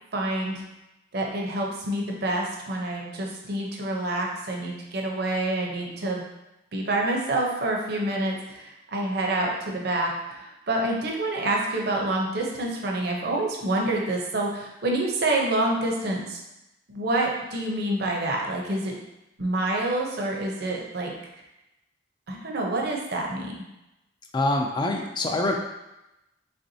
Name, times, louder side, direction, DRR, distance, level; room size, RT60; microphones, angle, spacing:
voice 1, 0.1-0.6 1.1-6.2 6.7-16.4 16.9-18.9 19.4-21.1 22.3-23.6, right 2 dB, 55° right, 0 dB, 0.7 m, -27 dB
voice 2, 24.3-25.5, left 2 dB, 25° left, 2 dB, 0.4 m, -25 dB
4.2 x 3.4 x 2.7 m, 0.93 s
head